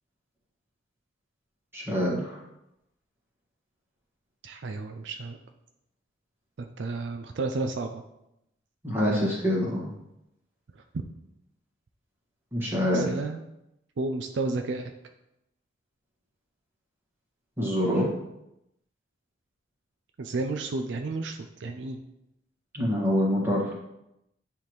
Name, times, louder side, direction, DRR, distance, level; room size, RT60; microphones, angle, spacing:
voice 1, 1.7-2.4 8.8-9.9 12.5-13.1 17.6-18.1 22.7-23.7, equal, 10° right, -5 dB, 1.7 m, -25 dB
voice 2, 4.4-5.4 6.6-8.0 12.9-13.4 14.0-14.9 20.2-22.0, right 3 dB, 65° right, 6 dB, 0.4 m, -32 dB
9.8 x 3.5 x 3.1 m, 0.86 s
head